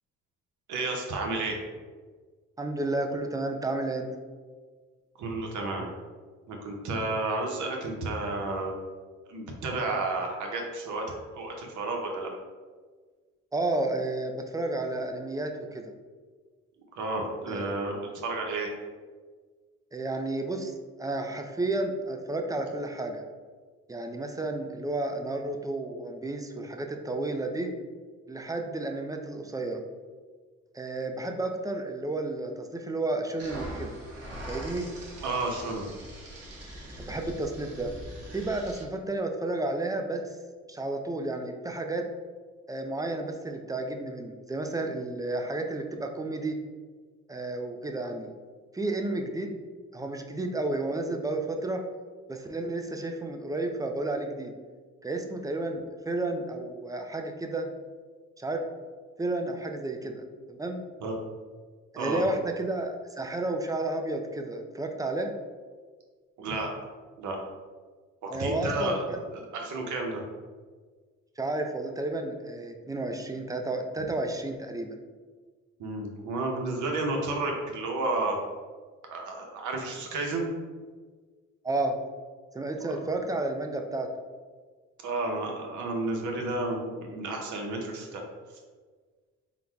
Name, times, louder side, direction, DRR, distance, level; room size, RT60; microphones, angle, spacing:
voice 1, 0.7-1.6 5.2-5.9 6.5-8.7 9.3-12.3 16.9-18.7 35.2-35.9 61.0-61.1 62.0-62.2 66.4-66.7 67.2-67.4 68.2-70.2 74.0-74.1 75.8-78.4 79.1-80.5 82.9-83.0 85.0-88.2, right 2 dB, 75° right, 1 dB, 0.9 m, -31 dB
voice 2, 2.6-4.1 13.5-15.9 17.5-17.7 19.9-23.2 23.9-27.7 28.3-29.8 30.7-34.0 34.5-34.9 37.0-37.9 38.3-40.4 40.7-42.1 42.7-46.6 47.3-48.3 48.7-49.6 49.9-51.8 52.3-54.5 55.0-57.7 58.4-58.6 59.2-60.8 61.9-65.3 68.3-69.2 71.4-75.0 81.6-82.0 82.5-84.1, right 2 dB, 10° right, 4 dB, 0.4 m, -32 dB
sound 1, 33.4-38.8, right 1 dB, 50° right, 1.2 m, -42 dB
3.9 x 2.2 x 4.5 m, 1.5 s
cardioid pair, 90°, 30 cm